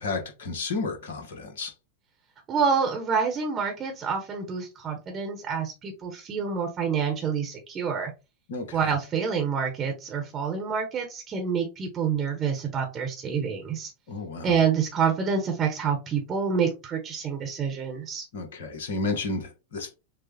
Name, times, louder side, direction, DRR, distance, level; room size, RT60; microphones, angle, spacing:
voice 1, 0.0-1.7 8.5-8.8 14.1-14.6 18.3-19.9, left 3 dB, 60° left, 1.3 m, -32 dB
voice 2, 2.5-8.1 8.7-13.9 14.4-18.2, right 6 dB, 25° right, 1.1 m, -27 dB
6.5 x 2.4 x 2.9 m
figure-of-eight pair, 90°, 0 cm